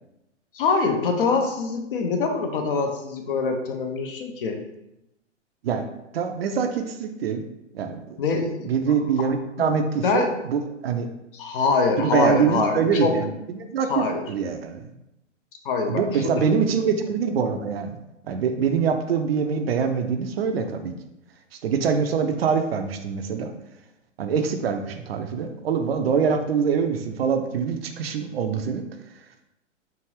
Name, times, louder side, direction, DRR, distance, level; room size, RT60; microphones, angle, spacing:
voice 1, 0.5-4.6 8.2-8.7 9.6-9.7 10.0-10.3 11.3-13.1 13.9-14.2 15.6-16.6, left 4 dB, 45° left, 4 dB, 0.6 m, -24 dB
voice 2, 6.1-7.4 7.7-11.1 12.0-14.9 15.9-18.0 18.2-20.9 21.6-23.5 24.2-28.8, right 6 dB, 55° right, 7 dB, 0.5 m, -24 dB
4.5 x 2.5 x 3.2 m, 0.88 s
figure-of-eight pair, 120°, 37 cm